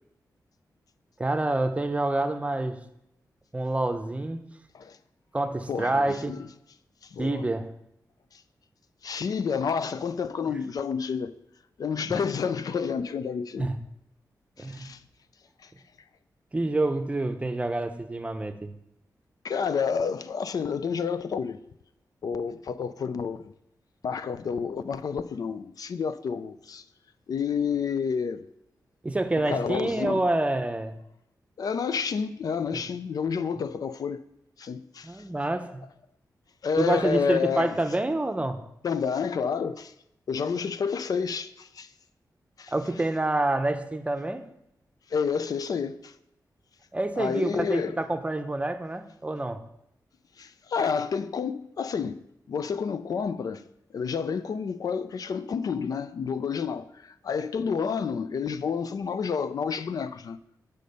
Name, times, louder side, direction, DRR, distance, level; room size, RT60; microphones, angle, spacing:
voice 1, 1.2-2.8 3.5-4.4 5.3-6.3 7.2-7.7 13.6-13.7 14.6-14.9 16.5-18.7 29.0-30.9 32.7-32.8 35.0-35.8 36.8-38.6 42.7-44.4 46.9-49.6, right 2 dB, 20° right, 0.7 m, -27 dB
voice 2, 5.7-6.5 7.0-7.5 8.3-8.4 9.0-11.3 11.8-13.7 14.6-15.0 15.6-15.7 19.4-21.6 22.2-23.5 24.0-26.8 27.3-28.5 29.3-30.2 31.6-34.2 34.6-35.2 36.6-37.8 38.8-39.9 40.3-41.9 42.6-42.7 45.1-46.1 47.2-48.0 50.4-52.2 52.5-53.6 53.9-60.4, left 6 dB, 65° left, 0.4 m, -29 dB
8.5 x 5.1 x 5.3 m
wide cardioid pair, 110°, 7 cm